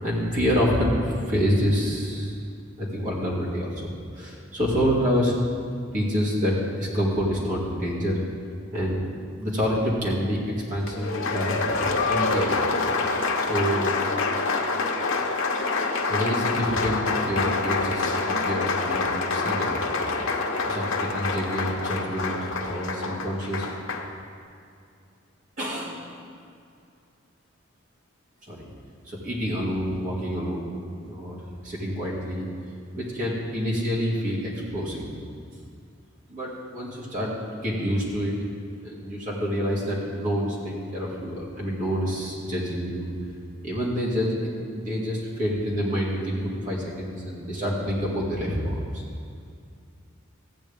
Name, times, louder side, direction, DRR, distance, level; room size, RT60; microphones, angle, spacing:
voice 1, 0.0-2.4 2.8-5.3 5.9-8.2 8.7-10.4 10.7-12.7 13.5-13.9 16.1-19.8 20.6-23.7 25.6-26.0 28.5-28.7 29.0-30.7 31.1-31.4 31.6-32.5 32.9-35.1 36.3-38.4 38.8-43.1 43.6-48.8, equal, 40° right, -6 dB, 2.2 m, -27 dB
Applause, 10.9-24.1, left 3 dB, 85° left, 0.9 m, -26 dB
14.5 x 9.0 x 3.5 m, 2.4 s
head